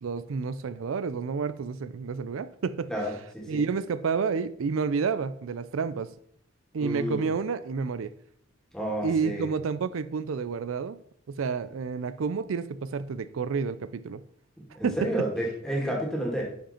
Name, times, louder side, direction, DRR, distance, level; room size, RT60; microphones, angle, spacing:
voice 1, 0.0-2.9 3.5-6.1 6.7-8.1 9.0-11.0 11.3-14.2 14.8-15.1, right 5 dB, 85° right, 14 dB, 0.4 m, -30 dB
voice 2, 2.9-3.6 6.8-7.2 8.7-9.5 14.7-16.4, right 1 dB, 5° left, -2 dB, 2.2 m, -30 dB
10.5 x 5.2 x 4.3 m, 0.66 s
head